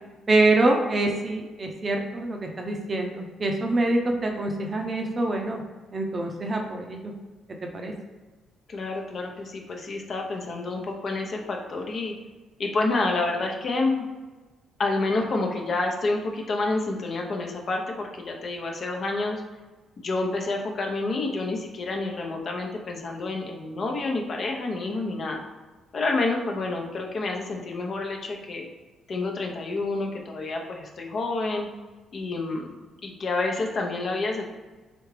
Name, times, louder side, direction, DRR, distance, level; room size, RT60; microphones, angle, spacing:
voice 1, 0.3-5.6 5.9-7.1 7.7-7.9, right 2 dB, 35° right, 2 dB, 0.5 m, -25 dB
voice 2, 8.7-12.1 12.6-14.1 14.8-19.4 20.0-25.4 25.9-28.7 29.1-31.7 32.1-32.7 33.0-34.5, left 3 dB, 50° left, 1 dB, 0.7 m, -28 dB
3.8 x 3.4 x 3.2 m, 1.3 s
cardioid pair, 90°, 0 cm